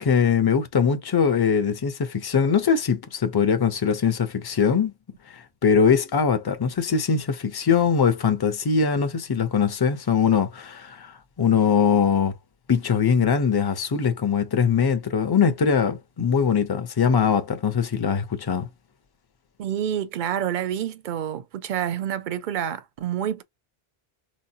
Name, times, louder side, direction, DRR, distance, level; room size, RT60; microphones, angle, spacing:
voice 1, 0.0-4.9 5.3-12.3 12.7-18.7, left 6 dB, 30° left, 0.5 m, -22 dB
voice 2, 19.6-23.4, right 10 dB, 60° right, 0.6 m, -28 dB
4.6 x 2.1 x 2.7 m
omnidirectional pair, 1.1 m